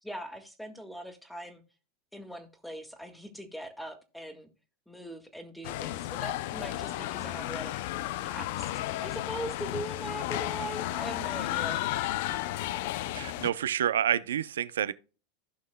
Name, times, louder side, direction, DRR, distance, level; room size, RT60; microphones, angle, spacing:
voice 1, 0.0-1.6 2.1-4.5 4.9-7.8 8.2-8.7 9.0-11.8, right 1 dB, 5° left, 1.7 m, -41 dB
sound 1, 5.6-13.5, left 15 dB, 65° left, 0.5 m, -33 dB
voice 2, 13.1-14.9, right 10 dB, 85° right, 0.5 m, -28 dB
15.5 x 5.6 x 2.2 m
hypercardioid pair, 105°, 0 cm